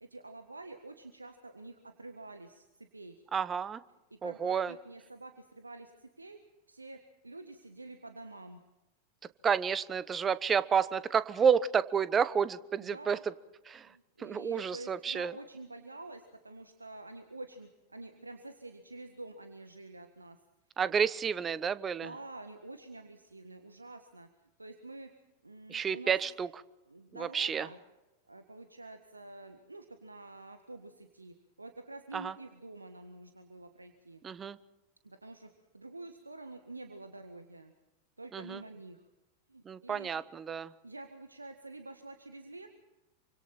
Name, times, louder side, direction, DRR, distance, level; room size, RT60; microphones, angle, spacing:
voice 1, 0.0-3.1 4.1-6.4 6.7-8.6 12.8-13.2 13.8-20.4 22.0-24.3 24.6-25.1 25.4-26.2 26.9-27.8 28.3-34.2 35.0-37.7 38.2-39.0 39.5-40.1 40.8-42.7, right 2 dB, 80° right, 8 dB, 1.6 m, -48 dB
voice 2, 3.3-3.8 4.2-4.7 9.4-13.2 13.7-13.9 14.2-15.3 20.8-22.1 25.7-26.5 27.1-27.7 32.1-32.3 34.2-34.6 38.3-38.6 39.7-40.7, right 7 dB, 20° right, 17 dB, 1.0 m, -30 dB
27.5 x 25.5 x 4.4 m, 0.99 s
figure-of-eight pair, 90°, 0 cm